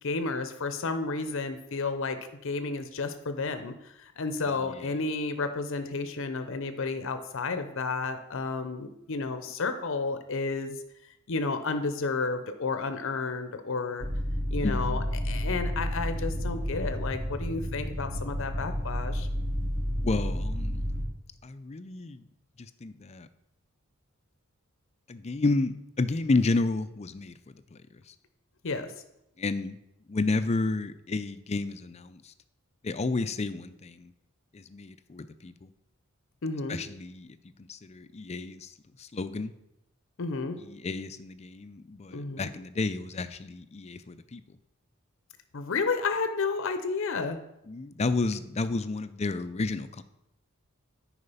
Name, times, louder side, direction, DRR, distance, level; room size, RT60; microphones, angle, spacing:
voice 1, 0.0-10.8 11.3-14.1 14.5-19.3 28.6-28.9 36.4-36.8 40.2-40.6 42.1-42.5 45.5-47.4, left 4 dB, 65° left, 9 dB, 0.7 m, -31 dB
voice 2, 4.5-4.9 14.6-15.0 20.0-20.8 21.4-22.3 22.6-23.3 25.1-28.1 29.4-29.8 30.1-32.3 32.8-34.1 34.5-35.7 36.7-39.5 40.6-44.4 47.7-50.0, left 3 dB, 30° left, 12 dB, 0.5 m, -31 dB
sound 1, 14.0-21.0, equal, 35° right, 1.7 m, -31 dB
9.8 x 4.9 x 5.5 m, 0.86 s
head